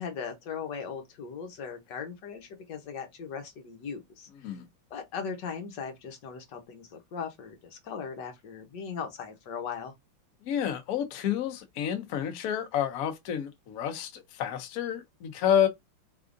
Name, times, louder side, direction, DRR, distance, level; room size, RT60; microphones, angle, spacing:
voice 1, 0.0-4.6 4.9-9.9, left 6 dB, 60° left, 1.4 m, -38 dB
voice 2, 10.4-15.7, left 9 dB, 75° left, 0.8 m, -29 dB
3.6 x 3.5 x 2.5 m
omnidirectional pair, 2.3 m